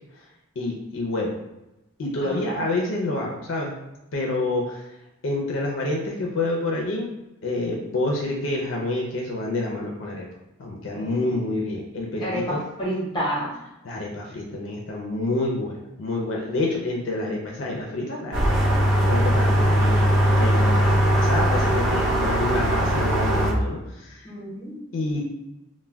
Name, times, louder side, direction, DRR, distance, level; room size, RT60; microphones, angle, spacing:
voice 1, 0.6-1.3 2.0-3.8 4.1-4.9 5.2-7.1 7.4-10.3 10.6-12.6 13.8-20.1 20.3-24.3 24.9-25.2, left 2 dB, 65° left, -1 dB, 0.4 m, -28 dB
voice 2, 2.2-2.6 10.9-11.4 12.2-13.5 24.2-24.8, equal, 20° left, -5 dB, 0.8 m, -30 dB
sound 1, 18.3-23.5, equal, 75° right, 0.6 m, -20 dB
2.2 x 2.1 x 3.3 m, 0.95 s
head